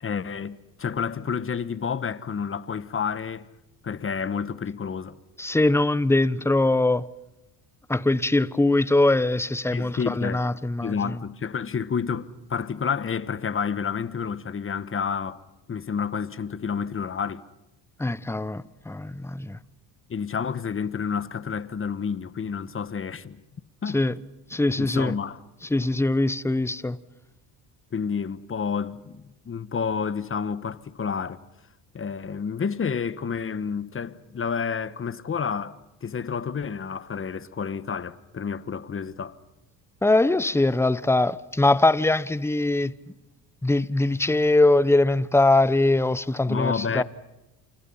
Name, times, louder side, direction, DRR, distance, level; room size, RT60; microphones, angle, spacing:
voice 1, 0.0-3.5 3.8-5.2 9.7-10.4 10.8-15.4 15.7-17.4 20.1-23.4 23.8-24.0 24.8-25.4 27.9-31.4 31.9-39.4 46.5-47.0, left 6 dB, 30° left, 1.2 m, -30 dB
voice 2, 5.4-7.1 7.9-11.2 18.0-19.6 23.9-24.2 24.5-25.1 25.7-27.0 40.0-42.9 43.6-47.0, left 2 dB, 5° left, 0.8 m, -22 dB
29.5 x 28.5 x 5.7 m
cardioid pair, 100°, 42 cm